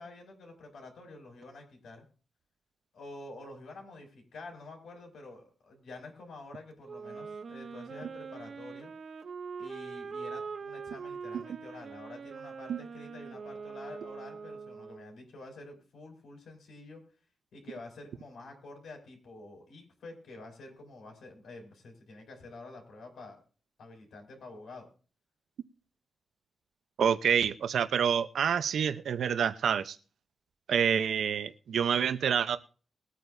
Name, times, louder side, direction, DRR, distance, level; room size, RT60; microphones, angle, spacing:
voice 1, 0.0-2.0 2.9-8.9 9.6-17.0 17.5-23.4 23.8-24.9, left 2 dB, 85° left, 1 dB, 5.4 m, -48 dB
Wind instrument woodwind instrument, 6.9-15.2, right 5 dB, 50° right, 0.9 m, -43 dB
voice 2, 27.0-30.0 30.7-32.6, right 7 dB, 85° right, 11 dB, 0.8 m, -27 dB
21.5 x 9.2 x 2.7 m, 0.38 s
wide cardioid pair, 170°, 0 cm